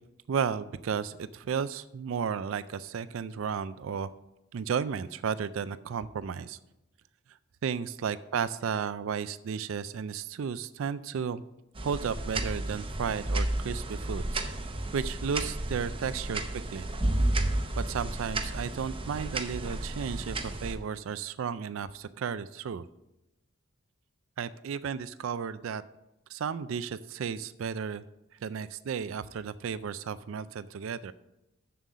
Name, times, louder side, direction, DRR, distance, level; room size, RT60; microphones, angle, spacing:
voice 1, 0.3-4.1 4.5-6.6 7.6-11.4 11.8-14.4 14.9-16.9 17.8-22.8 24.4-25.8 26.3-28.0 28.4-31.1, right 6 dB, 65° right, 15 dB, 0.3 m, -33 dB
sound 1, 11.8-20.7, right 1 dB, 25° right, 0.7 m, -32 dB
7.5 x 7.0 x 6.1 m, 0.93 s
head